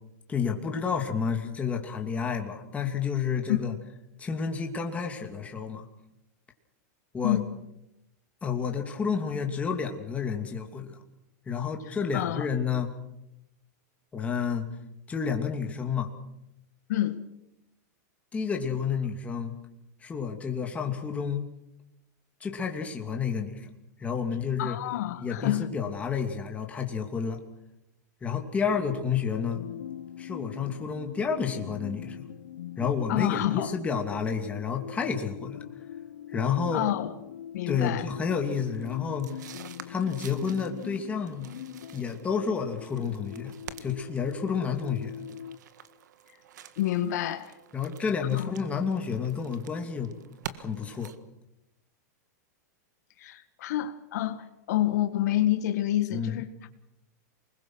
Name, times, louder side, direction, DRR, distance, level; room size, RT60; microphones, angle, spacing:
voice 1, 0.3-3.7 4.2-5.9 7.1-7.4 8.4-11.0 11.5-12.9 14.1-14.7 15.1-16.1 18.3-19.5 20.0-21.5 22.4-23.7 24.0-24.8 25.2-27.4 28.2-29.6 30.2-32.2 32.8-35.6 36.3-36.8 37.7-39.5 39.9-41.5 41.9-43.5 43.8-45.2 47.7-50.1 50.5-51.1 56.1-56.4, left 6 dB, 15° left, 2.7 m, -30 dB
voice 2, 12.1-12.5 16.9-17.2 24.6-25.7 33.1-33.7 36.7-37.1 37.5-38.1 46.8-47.5 48.3-48.5 53.2-56.7, left 13 dB, 65° left, 1.8 m, -28 dB
sound 1, 28.7-45.6, left 10 dB, 90° left, 0.8 m, -42 dB
sound 2, 38.4-51.2, right 9 dB, 80° right, 1.7 m, -48 dB
28.5 x 21.0 x 6.3 m
supercardioid pair, 150°, 9 cm